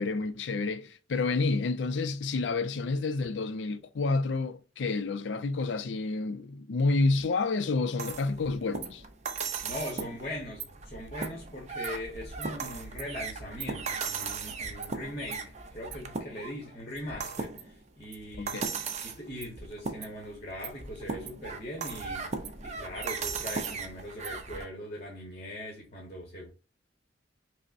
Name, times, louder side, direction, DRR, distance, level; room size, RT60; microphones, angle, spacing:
voice 1, 0.0-9.0 18.4-18.6, left 3 dB, 75° left, 0.4 m, -29 dB
sound 1, 8.0-24.7, right 5 dB, 40° right, 0.5 m, -37 dB
voice 2, 9.6-18.6 19.0-22.3 22.6-26.5, left 1 dB, 35° left, 1.0 m, -40 dB
5.1 x 2.1 x 2.5 m
head